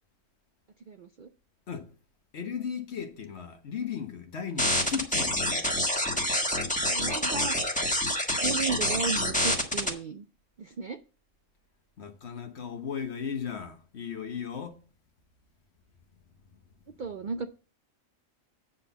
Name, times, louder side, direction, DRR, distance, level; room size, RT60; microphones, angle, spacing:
voice 1, 0.9-1.3 6.8-7.8 8.4-10.3 10.6-11.0 17.0-17.5, right 5 dB, 55° right, 0.5 m, -34 dB
voice 2, 2.3-5.7 12.0-14.8, left 7 dB, 55° left, 1.3 m, -36 dB
sound 1, 4.6-9.9, left 1 dB, 5° left, 1.2 m, -27 dB
8.7 x 4.1 x 6.8 m
omnidirectional pair, 1.4 m